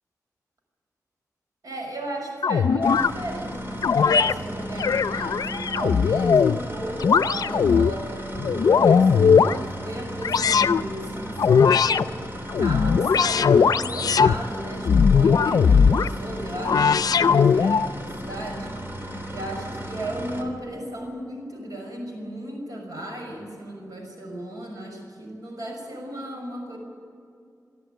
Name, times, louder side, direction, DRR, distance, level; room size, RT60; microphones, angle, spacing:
voice 1, 1.6-12.2 12.6-18.7 19.3-26.8, right 1 dB, 70° right, 1 dB, 6.3 m, -35 dB
sound 1, 2.4-3.1 3.8-4.3 4.8-6.6 7.0-7.9 8.4-9.6 10.2-10.8 11.4-12.0 12.5-14.4 14.8-16.1 16.6-17.9, left 6 dB, 75° left, 0.5 m, -19 dB
sound 2, 2.8-20.4, equal, 35° right, 3.2 m, -35 dB
24.5 x 13.0 x 9.2 m, 2.4 s
wide cardioid pair, 110°, 6 cm